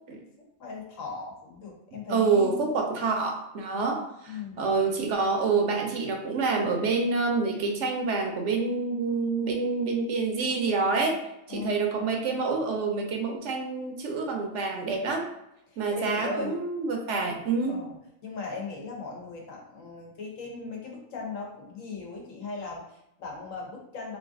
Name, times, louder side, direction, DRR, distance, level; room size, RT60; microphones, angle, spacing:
voice 1, 0.6-2.7 4.3-4.6 11.5-12.1 15.7-16.6 17.7-17.9 18.2-24.2, left 4 dB, 80° left, -1 dB, 1.3 m, -38 dB
voice 2, 2.1-11.2 11.5-15.3 15.8-17.7, right 4 dB, 70° right, 2 dB, 1.0 m, -27 dB
3.2 x 2.6 x 3.5 m, 0.84 s
omnidirectional pair, 1.3 m